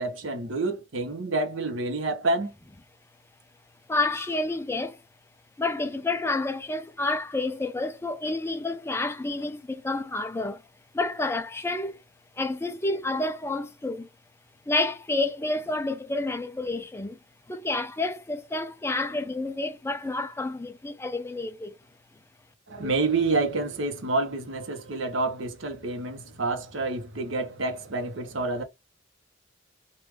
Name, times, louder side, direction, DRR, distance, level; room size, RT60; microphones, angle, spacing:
voice 1, 0.0-2.5 22.7-28.6, right 3 dB, 65° right, 0.9 m, -28 dB
voice 2, 3.9-5.0 5.6-10.6 10.9-12.0 12.4-14.1 14.7-17.2 17.5-21.8, left 2 dB, 10° left, 0.4 m, -29 dB
3.3 x 2.4 x 3.2 m
head